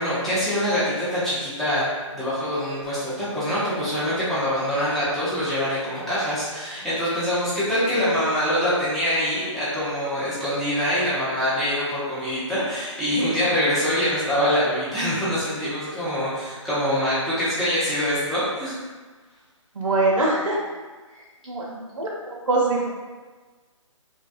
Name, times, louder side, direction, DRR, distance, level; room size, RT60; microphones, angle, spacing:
voice 1, 0.0-1.8 2.1-18.8, equal, ahead, -13 dB, 0.3 m, -24 dB
voice 2, 19.7-20.6 21.2-22.9, right 2 dB, 80° right, -3 dB, 0.5 m, -24 dB
2.6 x 2.1 x 2.4 m, 1.4 s
figure-of-eight pair, 145°, 17 cm